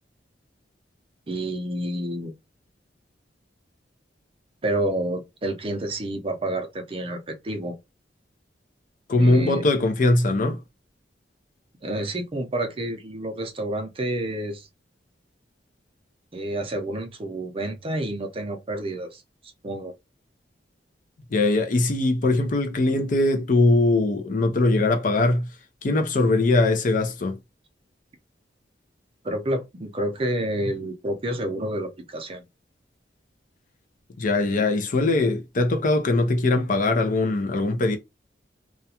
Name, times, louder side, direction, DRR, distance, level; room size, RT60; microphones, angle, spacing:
voice 1, 1.3-2.3 4.6-7.7 9.2-9.6 11.8-14.7 16.3-19.2 19.6-19.9 29.2-32.4, right 1 dB, 30° right, 0.5 m, -29 dB
voice 2, 9.1-10.6 21.3-25.5 25.8-27.4 34.2-38.0, left 2 dB, 50° left, 0.5 m, -21 dB
2.4 x 2.2 x 2.8 m
head